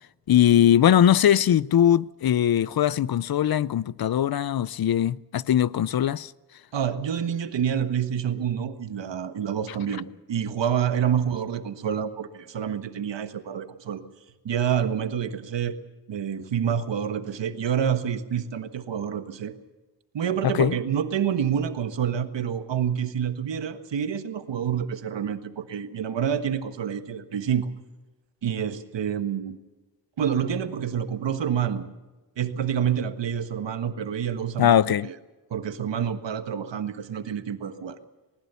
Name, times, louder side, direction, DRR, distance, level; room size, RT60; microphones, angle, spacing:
voice 1, 0.3-6.3 20.4-20.8 34.6-35.1, left 10 dB, 55° left, 0.6 m, -20 dB
voice 2, 6.7-14.0 14.4-15.7 16.1-19.5 20.1-27.7 28.4-29.6 30.2-31.8 32.4-34.8 35.0-35.2 35.5-38.0, right 8 dB, 80° right, 1.5 m, -28 dB
20.5 x 19.5 x 7.0 m
wide cardioid pair, 100°, 43 cm